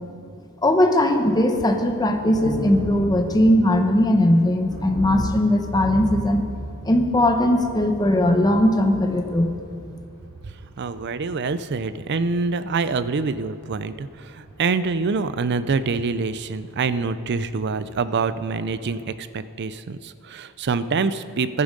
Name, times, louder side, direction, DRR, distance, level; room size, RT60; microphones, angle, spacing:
voice 1, 0.6-6.5 6.8-9.5, left 1 dB, 20° left, 5 dB, 0.9 m, -19 dB
Thunder, 1.2-19.1, right 1 dB, 75° right, 2.9 m, -37 dB
voice 2, 10.4-21.6, right 4 dB, 50° right, 14 dB, 0.5 m, -26 dB
14.5 x 10.5 x 5.2 m, 2.5 s
head